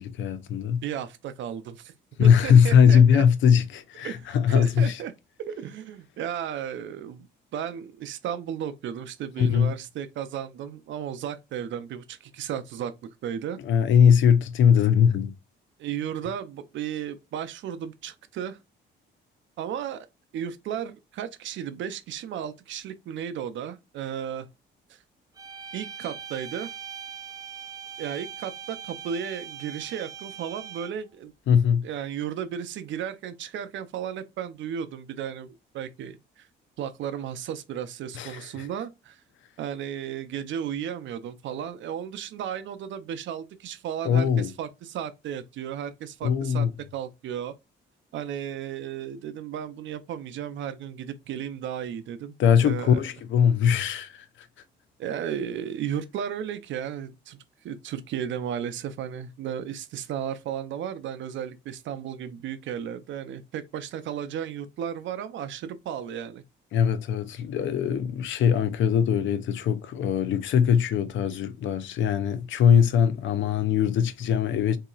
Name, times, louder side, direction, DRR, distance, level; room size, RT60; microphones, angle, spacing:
voice 1, 0.0-0.8 2.2-5.0 9.4-9.7 13.6-15.3 31.5-31.9 38.1-38.7 44.0-44.5 46.2-46.7 52.4-54.5 66.7-74.8, left 7 dB, 70° left, 0.5 m, -21 dB
voice 2, 0.8-1.9 2.2-3.2 4.0-5.1 5.5-7.3 7.5-12.9 13.2-13.6 15.8-18.6 19.6-20.1 20.3-24.5 24.9-25.0 25.7-26.7 28.0-31.3 31.8-36.5 36.8-39.2 39.6-46.7 46.9-47.5 48.1-52.3 52.6-53.0 55.0-57.4 57.6-66.4, right 9 dB, 70° right, 0.5 m, -34 dB
sound 1, 25.4-31.1, right 8 dB, 20° right, 0.5 m, -41 dB
3.9 x 2.8 x 2.3 m
cardioid pair, 90°, 20 cm